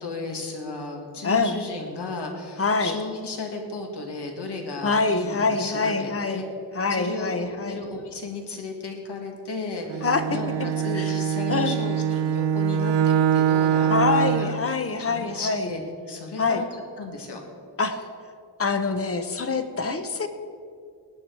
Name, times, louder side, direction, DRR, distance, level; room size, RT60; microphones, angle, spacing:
voice 1, 0.0-6.5 6.9-14.7 15.0-15.8 16.1-16.7 17.0-17.4, left 3 dB, 80° left, 2 dB, 2.1 m, -34 dB
voice 2, 1.2-1.6 2.6-3.0 4.8-6.4 6.7-7.8 10.0-10.2 10.9-11.2 11.5-11.8 13.9-15.7 16.4-16.6 17.8-18.0 18.6-20.3, left 4 dB, 35° left, 9 dB, 0.9 m, -25 dB
Bowed string instrument, 9.9-14.6, right 8 dB, 90° right, 0.6 m, -23 dB
18.5 x 9.2 x 4.7 m, 2.3 s
wide cardioid pair, 150°, 40 cm